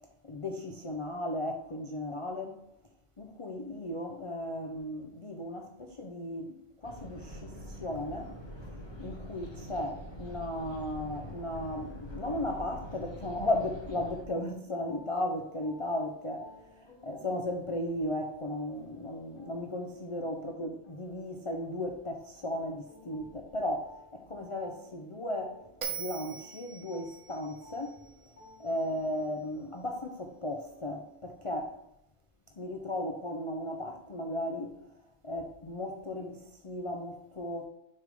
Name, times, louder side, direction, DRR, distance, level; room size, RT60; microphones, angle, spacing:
voice 1, 0.2-2.6 3.2-8.3 8.7-25.6 26.0-28.0 28.6-31.7 32.6-35.0 35.2-37.7, left 1 dB, 50° left, 0.3 m, -36 dB
Wind Farm Whistle, 6.8-14.2, equal, 20° left, 1.2 m, -44 dB
sound 1, 14.2-31.0, left 1 dB, 70° left, 1.8 m, -58 dB
Bell, 25.8-29.1, right 7 dB, 80° right, 1.6 m, -42 dB
6.5 x 3.5 x 5.2 m
omnidirectional pair, 1.5 m